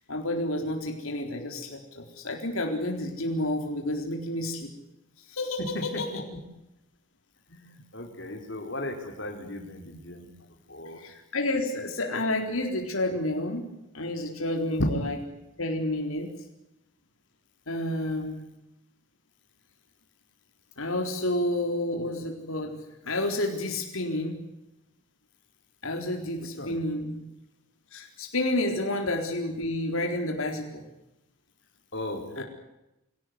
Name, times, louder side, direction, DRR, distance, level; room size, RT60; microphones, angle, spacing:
voice 1, 0.1-4.7 5.3-6.3 11.0-15.2 15.6-16.3 17.7-18.4 20.8-24.4 25.8-27.2 27.9-30.9 32.4-32.5, left 1 dB, 80° left, 3 dB, 4.1 m, -30 dB
voice 2, 5.6-6.2 7.5-10.3 10.7-11.0 14.7-14.8 26.4-26.8 31.9-32.4, left 1 dB, 55° left, 3 dB, 4.7 m, -35 dB
25.5 x 18.0 x 9.6 m, 0.91 s
head